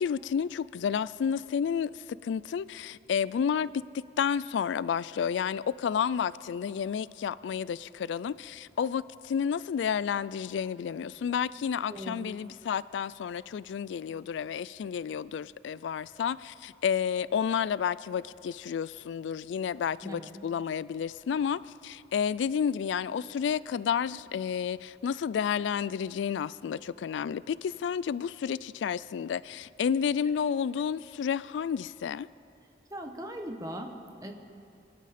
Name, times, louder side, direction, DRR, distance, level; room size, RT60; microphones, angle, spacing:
voice 1, 0.0-1.9 2.2-32.3, left 7 dB, 90° left, 20 dB, 0.3 m, -31 dB
voice 2, 11.9-12.3 20.0-20.3 32.9-34.3, equal, 20° right, 4 dB, 1.1 m, -39 dB
24.0 x 12.0 x 4.2 m, 2.6 s
head